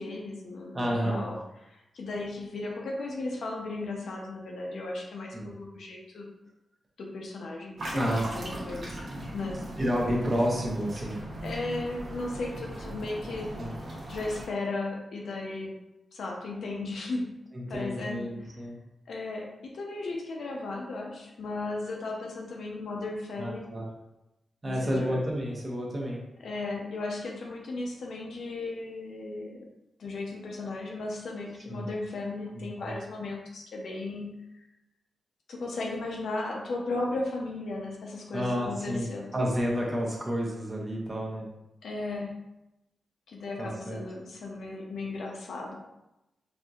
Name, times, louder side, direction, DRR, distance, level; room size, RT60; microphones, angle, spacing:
voice 1, 0.0-1.4 1.6-6.2 7.0-8.0 8.3-9.0 9.3-9.6 11.4-13.6 14.1-15.8 16.1-17.3 17.7-18.2 19.1-23.7 24.6-25.2 26.4-29.6 30.0-34.3 35.5-39.3 41.8-42.3 43.3-45.7, left 2 dB, 75° left, 0 dB, 0.7 m, -35 dB
voice 2, 0.7-1.2 5.3-5.5 7.8-8.2 9.1-9.2 9.8-11.2 13.6-13.7 17.5-18.8 23.4-23.8 24.6-26.2 31.7-31.9 32.8-32.9 38.3-39.1 39.3-41.5 43.6-44.0, equal, 30° right, -3 dB, 0.9 m, -30 dB
sound 1, 7.8-14.5, right 1 dB, 50° right, 1.0 m, -39 dB
4.4 x 2.6 x 2.4 m, 0.92 s
wide cardioid pair, 130°, 0 cm